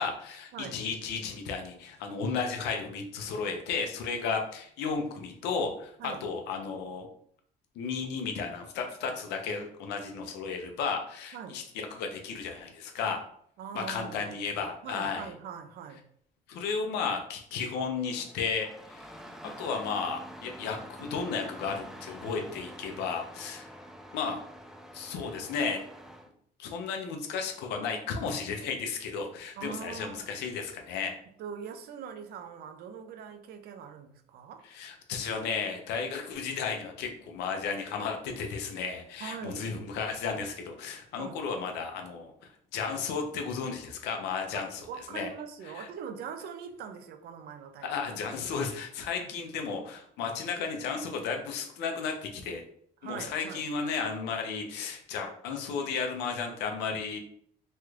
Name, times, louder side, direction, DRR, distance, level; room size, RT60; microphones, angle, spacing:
voice 1, 0.0-7.1 7.8-13.2 13.7-15.3 16.5-19.2 19.6-23.7 24.1-24.4 24.9-25.8 26.6-31.1 34.6-42.3 42.7-45.3 45.7-45.9 47.8-52.6 53.0-57.2, left 5 dB, 85° left, 4 dB, 0.6 m, -34 dB
voice 2, 13.6-14.3 14.8-16.0 29.6-30.3 31.4-34.7 39.2-39.8 41.2-41.4 44.5-47.9 49.2-49.3 53.0-53.6, right 7 dB, 70° right, 7 dB, 0.5 m, -42 dB
Engine starting, 18.2-26.3, equal, ahead, 0.4 m, -47 dB
3.1 x 2.4 x 3.1 m, 0.64 s
cardioid pair, 110°, 17 cm